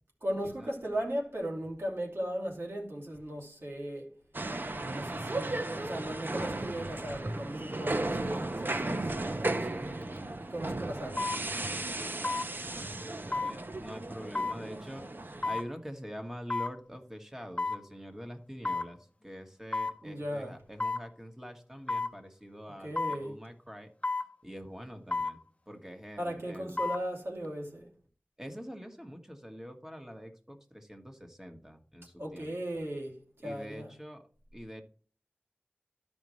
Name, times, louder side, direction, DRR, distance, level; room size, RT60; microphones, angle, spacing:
voice 1, 0.2-4.1 4.9-9.1 9.4-10.1 10.5-11.3 20.0-20.5 22.8-23.3 26.2-27.9 32.2-33.9, right 1 dB, 85° right, 2.6 m, -37 dB
sound 1, 4.3-15.6, right 2 dB, 60° right, 0.7 m, -35 dB
voice 2, 9.6-10.4 12.0-15.1 15.4-23.9 24.4-25.4 25.7-26.9 28.4-32.5 33.4-34.2 34.5-34.8, equal, 10° right, 1.6 m, -45 dB
sound 2, 10.0-10.2 11.2-11.4 12.2-12.5 13.3-13.6 14.3-14.6 15.4-15.7 16.5-16.7 17.6-17.8 18.6-18.9 19.7-20.0 20.8-21.1 21.9-22.1 23.0-23.2 24.0-24.3 25.1-25.4 26.5-27.0 27.4-27.5, left 3 dB, 35° left, 0.7 m, -32 dB
13.0 x 5.3 x 3.1 m
wide cardioid pair, 50°, 4 cm